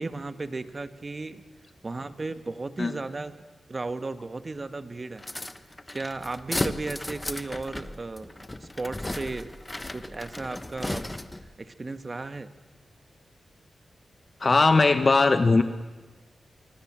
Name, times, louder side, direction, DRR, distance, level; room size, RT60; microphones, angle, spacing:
voice 1, 0.0-1.4 1.8-5.2 5.9-9.5 9.9-11.1 11.6-12.5, right 3 dB, 40° right, 11 dB, 1.5 m, -35 dB
sound 1, 5.2-11.5, left 1 dB, 20° left, 1.2 m, -35 dB
voice 2, 14.4-15.6, left 3 dB, 45° left, 10 dB, 1.2 m, -19 dB
24.5 x 24.5 x 7.5 m, 1.3 s
cardioid pair, 65°, 0 cm